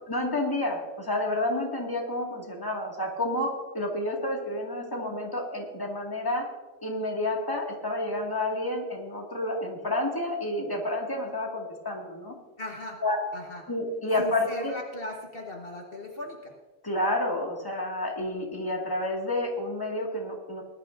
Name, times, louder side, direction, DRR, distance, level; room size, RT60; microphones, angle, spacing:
voice 1, 0.1-6.4 6.8-12.3 13.0-13.2 13.7-14.7 16.8-20.6, left 1 dB, 20° left, 0 dB, 2.0 m, -30 dB
voice 2, 12.6-13.0 13.3-13.6 14.2-16.5, left 2 dB, 55° left, 0 dB, 1.4 m, -38 dB
20.0 x 11.0 x 2.5 m, 1.3 s
omnidirectional pair, 1.2 m